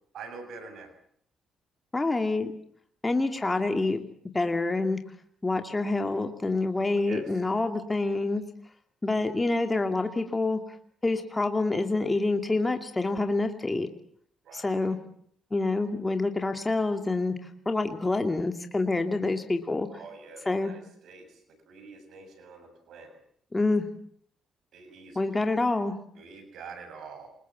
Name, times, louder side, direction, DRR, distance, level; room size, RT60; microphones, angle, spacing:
voice 1, 0.1-0.9 6.9-7.3 14.4-14.9 19.9-23.2 24.7-25.4 26.2-27.3, right 4 dB, 70° right, 8 dB, 7.2 m, -46 dB
voice 2, 1.9-2.5 3.0-4.0 4.3-5.0 5.4-8.4 9.0-10.6 11.0-13.9 14.5-15.0 15.5-17.4 17.7-19.9 20.5-20.7 23.5-23.9 25.2-25.9, left 2 dB, 20° left, 6 dB, 2.4 m, -27 dB
28.0 x 21.5 x 7.4 m, 0.63 s
cardioid pair, 90°, 0 cm